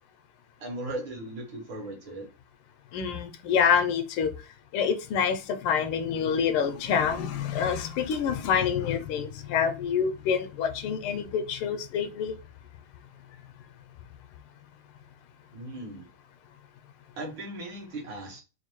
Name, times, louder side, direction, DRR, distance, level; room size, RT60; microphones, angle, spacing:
voice 1, 0.6-2.3 15.5-16.1 17.2-18.4, right 1 dB, 65° right, 2.0 m, -37 dB
voice 2, 2.9-4.3 4.7-12.4, left 7 dB, 80° left, 1.4 m, -27 dB
4.1 x 2.6 x 3.0 m
omnidirectional pair, 2.4 m